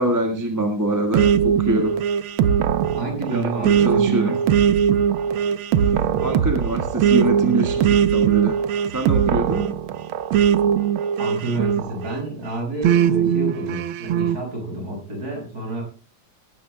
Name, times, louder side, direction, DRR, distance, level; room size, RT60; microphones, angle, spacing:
voice 1, 0.0-2.0 3.3-4.4 6.2-8.6 8.9-9.7, right 1 dB, 10° right, 3 dB, 1.5 m, -24 dB
sound 1, 1.1-12.2 12.8-14.4, right 8 dB, 80° right, 1.6 m, -20 dB
voice 2, 2.9-4.3 11.2-15.8, right 1 dB, 45° right, 1 dB, 7.8 m, -29 dB
19.5 x 15.5 x 2.2 m, 0.32 s
omnidirectional pair, 2.2 m